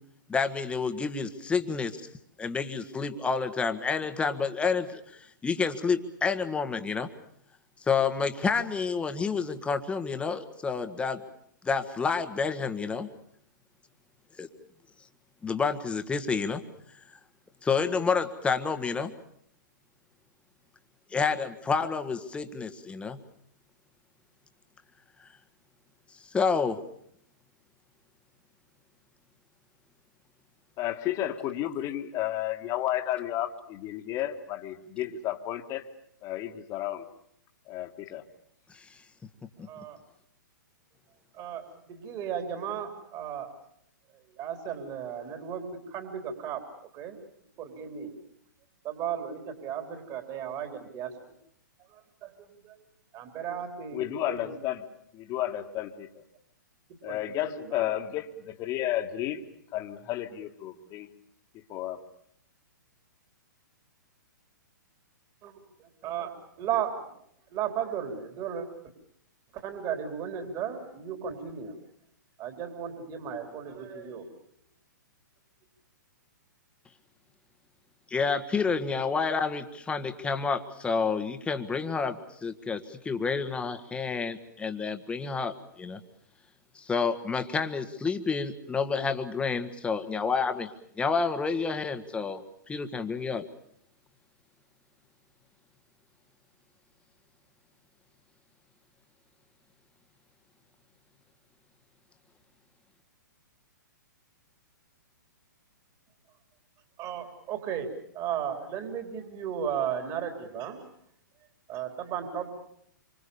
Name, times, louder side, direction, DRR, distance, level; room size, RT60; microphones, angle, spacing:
voice 1, 0.3-2.0 2.4-7.1 7.9-11.2 11.6-13.1 14.4-14.5 15.4-16.6 17.6-19.1 21.1-23.2 26.3-26.8 38.7-38.8 78.1-86.0 86.7-90.7 91.0-92.4 92.7-93.4, left 5 dB, 10° left, 8 dB, 1.6 m, -29 dB
voice 2, 30.8-35.8 36.2-37.0 37.7-38.2 53.9-54.8 55.1-56.1 57.0-59.4 59.7-61.1 61.7-62.0, left 13 dB, 30° left, 6 dB, 2.0 m, -32 dB
voice 3, 39.7-40.0 41.3-43.5 44.4-46.6 46.9-47.2 47.6-48.1 48.8-51.1 52.2-52.3 52.6-52.7 53.1-54.0 54.3-54.6 57.1-57.9 65.4-65.6 66.0-66.3 66.6-67.0 67.5-68.7 69.5-71.8 72.4-74.3 107.0-107.9 108.1-110.8 111.7-112.5, right 8 dB, 30° right, 6 dB, 3.7 m, -35 dB
26.5 x 25.5 x 7.0 m, 0.70 s
hypercardioid pair, 125°, 11 cm